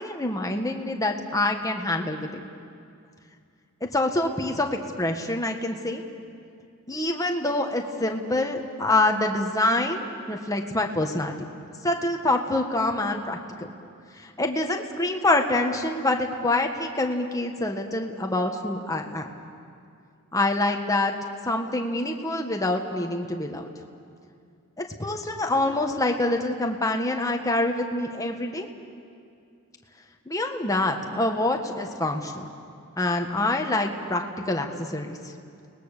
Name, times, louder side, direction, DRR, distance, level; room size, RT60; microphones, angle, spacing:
voice 1, 0.0-2.5 3.8-6.0 6.9-11.3 11.8-13.7 14.2-19.3 20.3-21.1 21.4-23.7 24.8-28.7 30.3-32.4 33.0-35.3, left 2 dB, 15° left, 3 dB, 1.5 m, -26 dB
30.0 x 20.0 x 6.8 m, 2.4 s
head